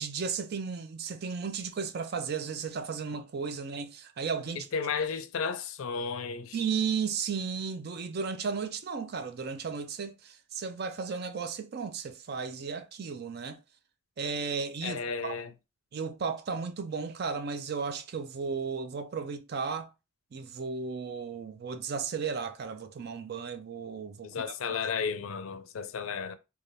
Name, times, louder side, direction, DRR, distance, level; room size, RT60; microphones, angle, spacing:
voice 1, 0.0-4.7 6.5-13.6 14.2-15.4 15.9-19.9 20.3-24.5, right 5 dB, 50° right, 0.4 m, -34 dB
voice 2, 4.7-6.6 14.8-15.5 24.2-26.4, left 5 dB, 80° left, 0.4 m, -33 dB
3.2 x 2.3 x 2.6 m
head